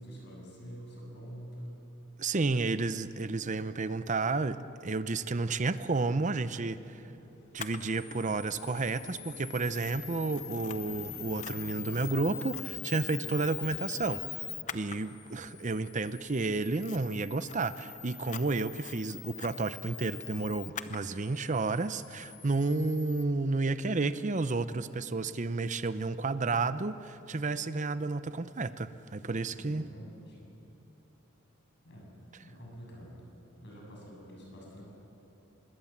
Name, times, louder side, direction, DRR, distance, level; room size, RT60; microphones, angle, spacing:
voice 1, 0.0-1.8 29.1-30.5 31.8-32.1 32.4-33.2 33.6-34.8, equal, 55° left, -2 dB, 7.8 m, -47 dB
voice 2, 2.2-7.0 7.5-14.2 14.7-29.8, right 3 dB, 35° right, 13 dB, 0.7 m, -31 dB
Motorcycle, 4.7-14.0, equal, 70° left, 3.7 m, -51 dB
Camera, 7.6-23.2, left 11 dB, 35° left, 0.8 m, -43 dB
25.5 x 21.0 x 7.4 m, 3.0 s
head